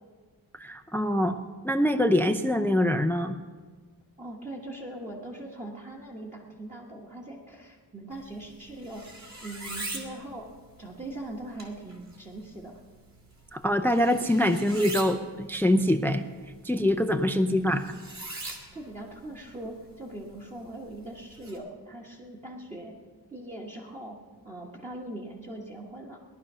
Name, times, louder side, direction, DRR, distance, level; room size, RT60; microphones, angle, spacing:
voice 1, 0.5-1.4 1.6-3.4 13.5-16.2 16.6-18.0, left 1 dB, 5° left, 8 dB, 0.5 m, -24 dB
voice 2, 4.2-9.1 9.4-10.5 10.8-12.8 17.7-17.8 18.4-22.9 23.3-24.2 24.4-26.2, right 1 dB, 20° right, -2 dB, 1.4 m, -41 dB
sound 1, 8.1-21.6, right 2 dB, 40° right, 2.6 m, -44 dB
18.5 x 11.5 x 5.6 m, 1.5 s
wide cardioid pair, 175°, 41 cm